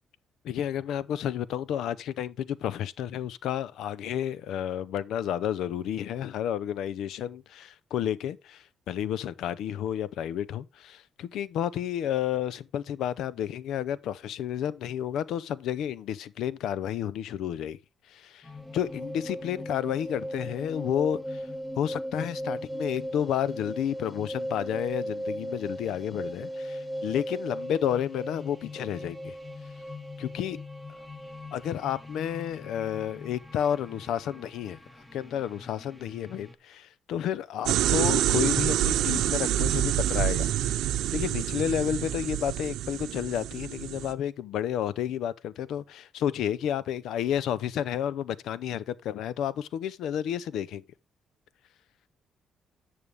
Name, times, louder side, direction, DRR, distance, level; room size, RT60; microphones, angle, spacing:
voice 1, 0.4-17.8 18.1-21.5 21.8-29.4 30.2-30.6 31.5-34.8 35.1-50.8, left 10 dB, 80° left, 0.6 m, -31 dB
sound 1, 18.4-36.5, equal, 5° left, 1.5 m, -38 dB
sound 2, 37.7-44.1, right 12 dB, 85° right, 0.7 m, -27 dB
11.0 x 6.7 x 3.5 m
cardioid pair, 90°, 0 cm